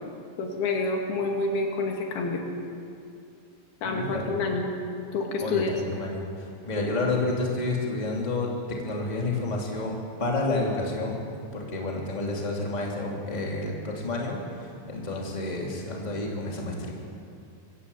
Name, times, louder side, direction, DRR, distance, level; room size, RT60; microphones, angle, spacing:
voice 1, 0.4-2.4 3.8-4.7 5.1-5.8, left 3 dB, 85° left, 1 dB, 4.3 m, -28 dB
voice 2, 3.8-4.3 5.4-5.6 5.9-6.2 6.7-8.5 8.8-11.2 11.5-16.9, left 2 dB, 10° left, -2 dB, 2.6 m, -29 dB
25.5 x 14.0 x 8.5 m, 2.4 s
omnidirectional pair, 4.4 m